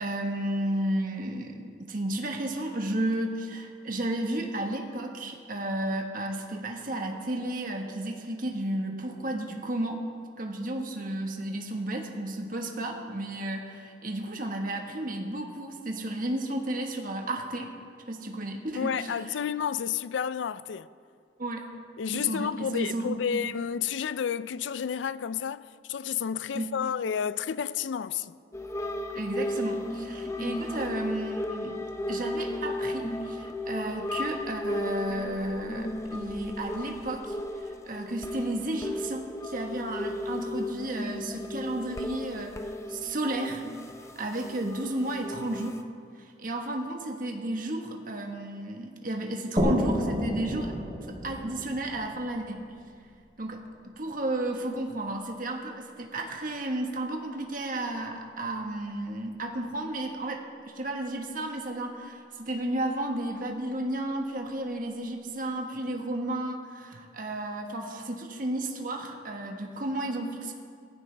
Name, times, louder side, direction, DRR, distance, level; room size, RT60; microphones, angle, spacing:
voice 1, 0.0-10.0 10.4-17.7 18.1-19.4 21.4-21.6 22.1-23.1 26.5-26.7 29.1-31.8 32.1-43.6 44.1-45.8 46.2-50.7 51.1-52.7 53.4-70.5, right 1 dB, 50° right, 1.4 m, -33 dB
voice 2, 18.8-20.9 22.0-28.3, left 8 dB, 85° left, 0.4 m, -31 dB
sound 1, 28.5-45.8, left 1 dB, 15° left, 0.6 m, -35 dB
sound 2, 49.6-53.1, equal, 30° right, 3.6 m, -30 dB
18.5 x 15.0 x 3.4 m
head